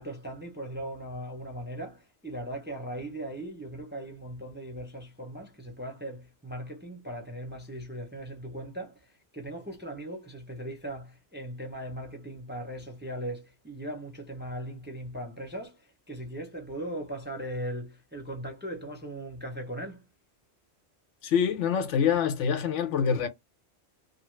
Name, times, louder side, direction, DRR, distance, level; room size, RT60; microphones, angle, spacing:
voice 1, 0.0-9.0 9.3-20.0, right 1 dB, 10° right, 0.5 m, -38 dB
voice 2, 21.2-23.3, left 7 dB, 90° left, 1.1 m, -25 dB
2.5 x 2.4 x 3.1 m
omnidirectional pair, 1.2 m